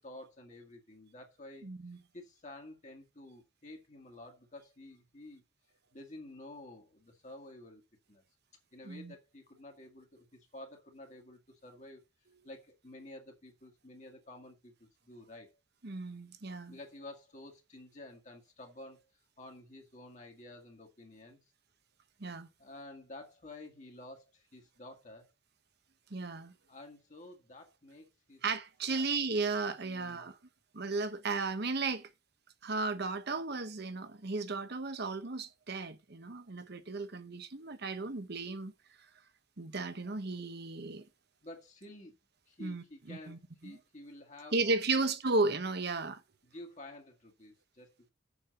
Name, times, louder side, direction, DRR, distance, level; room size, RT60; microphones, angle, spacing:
voice 1, 0.0-5.4 5.9-7.8 8.1-8.2 8.7-12.0 12.4-15.6 16.7-21.4 22.6-25.3 26.7-28.4 28.9-29.3 29.8-30.3 41.4-42.2 42.5-45.4 46.4-48.1, left 1 dB, 35° left, 1.8 m, -51 dB
voice 2, 1.6-2.0 8.9-9.1 15.8-16.8 22.2-22.5 26.1-26.5 28.4-30.4 30.7-32.1 32.6-38.7 39.6-41.0 42.6-43.4 43.6-43.8 44.5-46.2, right 3 dB, 55° right, 1.0 m, -34 dB
7.2 x 5.6 x 6.8 m
head